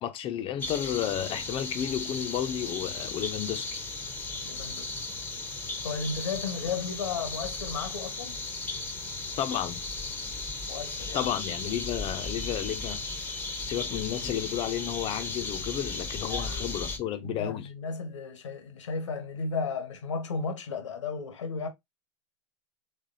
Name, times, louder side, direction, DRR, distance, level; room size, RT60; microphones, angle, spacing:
voice 1, 0.0-3.8 9.4-9.8 11.1-13.2 13.6-17.7, left 11 dB, 35° left, 0.8 m, -32 dB
sound 1, 0.6-17.0, left 3 dB, 10° left, 1.0 m, -36 dB
voice 2, 4.4-4.9 5.8-8.4 10.7-11.2 16.3-16.7 17.2-21.7, left 4 dB, 80° left, 1.3 m, -34 dB
3.4 x 3.4 x 2.6 m
hypercardioid pair, 105°, 16 cm